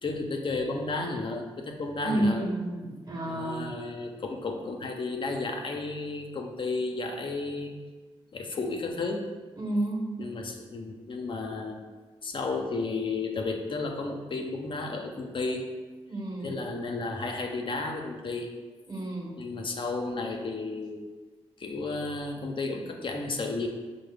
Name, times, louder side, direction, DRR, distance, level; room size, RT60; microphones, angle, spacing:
voice 1, 0.0-2.5 3.3-7.7 8.3-9.3 10.2-11.8 12.2-15.7 16.4-18.5 19.4-21.1 21.6-23.7, left 3 dB, 50° left, 2 dB, 0.5 m, -33 dB
voice 2, 2.0-3.7 9.6-10.1 16.1-16.6 18.9-19.3, right 1 dB, 40° right, -2 dB, 1.1 m, -30 dB
4.5 x 2.1 x 3.3 m, 1.3 s
supercardioid pair, 50°, 11 cm